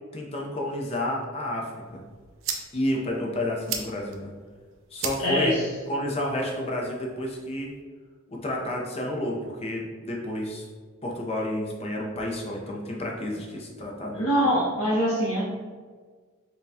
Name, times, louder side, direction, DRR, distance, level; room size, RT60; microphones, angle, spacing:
voice 1, 0.1-2.0 2.7-4.3 4.9-5.6 5.9-7.7 8.3-10.6 11.0-14.2, left 1 dB, 30° left, -1 dB, 0.6 m, -30 dB
sound 1, 1.8-7.8, right 6 dB, 65° right, 0.5 m, -39 dB
voice 2, 5.2-5.7 14.1-15.4, equal, 65° left, -7 dB, 0.7 m, -24 dB
5.4 x 2.3 x 2.7 m, 1.5 s
head